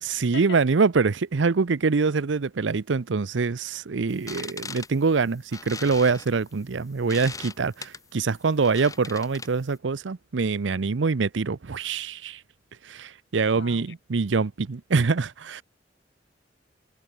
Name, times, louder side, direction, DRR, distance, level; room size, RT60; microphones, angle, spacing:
voice 1, 0.0-12.4 12.8-15.6, right 4 dB, 85° right, 0.6 m, -24 dB
sound 1, 4.1-9.8, left 4 dB, 20° left, 6.7 m, -40 dB
voice 2, 13.5-13.9, left 4 dB, 70° left, 2.6 m, -40 dB
head